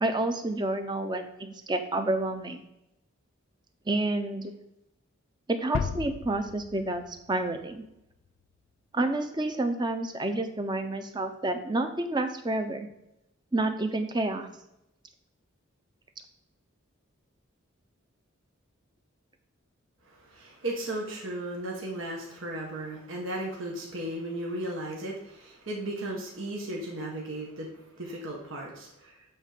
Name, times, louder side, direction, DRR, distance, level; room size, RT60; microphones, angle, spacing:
voice 1, 0.0-2.6 3.9-4.6 5.5-7.0 7.3-7.8 8.9-12.9 13.5-14.5, right 2 dB, 20° right, 7 dB, 0.7 m, -29 dB
sound 1, 5.7-8.4, left 6 dB, 65° left, 0.3 m, -36 dB
voice 2, 20.1-29.2, right 1 dB, 70° right, -1 dB, 1.6 m, -36 dB
8.6 x 3.9 x 6.7 m, 0.86 s
head